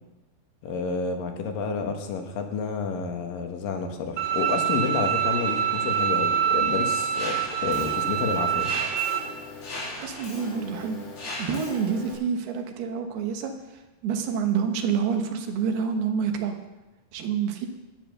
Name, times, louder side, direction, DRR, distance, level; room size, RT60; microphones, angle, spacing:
voice 1, 0.6-8.7, left 5 dB, 70° left, 5 dB, 2.9 m, -30 dB
Bowed string instrument, 4.2-9.2, right 9 dB, 70° right, 2.4 m, -25 dB
Mechanisms, 7.1-12.1, left 2 dB, 90° left, 7.0 m, -37 dB
voice 2, 10.0-11.0 11.4-13.5 14.0-16.6 17.1-17.7, right 6 dB, 85° right, 5 dB, 3.3 m, -27 dB
12.5 x 10.0 x 6.7 m, 1.0 s
omnidirectional pair, 4.4 m